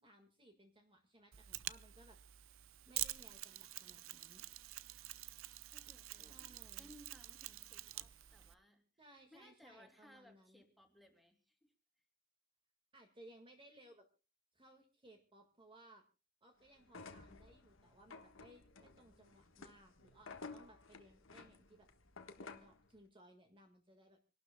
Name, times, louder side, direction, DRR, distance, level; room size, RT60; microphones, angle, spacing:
voice 1, 0.0-2.2 2.9-4.4 6.1-6.9 9.0-10.6 12.9-14.1 14.5-16.0 16.4-21.9 22.4-24.2, right 1 dB, 25° right, 3 dB, 1.8 m, -62 dB
Mechanisms, 1.3-8.5, right 15 dB, 75° right, 0.6 m, -47 dB
voice 2, 5.7-8.8 9.3-11.7, equal, ahead, 5 dB, 2.8 m, -63 dB
sound 1, 16.8-22.8, left 4 dB, 70° left, 1.4 m, -54 dB
27.5 x 12.0 x 2.2 m, 0.33 s
head